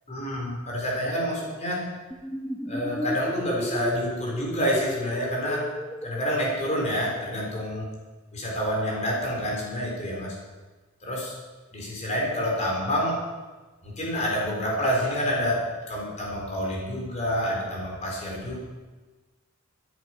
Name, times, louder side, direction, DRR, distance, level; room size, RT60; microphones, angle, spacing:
voice 1, 0.1-1.8 2.7-5.6 6.0-7.9 8.3-10.4 11.0-11.3 11.7-13.2 13.8-18.6, equal, 30° left, -3 dB, 3.9 m, -28 dB
sound 1, 2.1-7.5, left 1 dB, 5° left, 0.4 m, -34 dB
13.5 x 10.5 x 5.9 m, 1.3 s
head